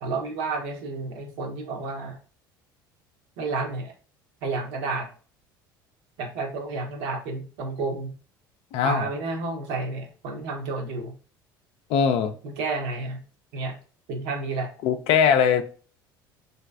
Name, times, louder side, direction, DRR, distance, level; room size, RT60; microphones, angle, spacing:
voice 1, 0.0-2.2 3.4-3.9 4.4-5.1 6.2-8.1 8.8-11.1 12.4-13.2 13.5-13.8 14.1-14.7, right 3 dB, 65° right, 0.8 m, -31 dB
voice 2, 8.7-9.1 11.9-12.4 14.8-15.6, left 7 dB, 55° left, 0.4 m, -21 dB
3.1 x 2.7 x 2.3 m
hypercardioid pair, 65°, 12 cm